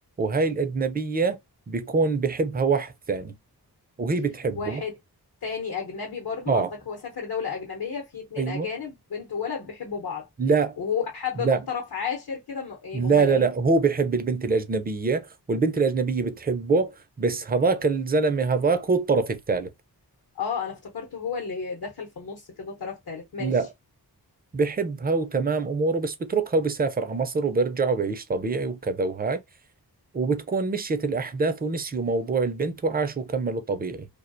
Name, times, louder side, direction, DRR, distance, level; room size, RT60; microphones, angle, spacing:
voice 1, 0.2-1.4 1.7-3.3 4.0-4.8 6.5-6.7 8.4-8.7 10.4-10.8 11.4-11.6 12.9-19.7 23.4-23.7 24.5-29.4 30.1-34.1, right 4 dB, 25° right, 0.4 m, -24 dB
voice 2, 4.5-4.9 5.4-10.3 10.8-13.5 20.4-23.5, left 6 dB, 65° left, 0.9 m, -32 dB
2.3 x 2.2 x 2.5 m
wide cardioid pair, 80°, 40 cm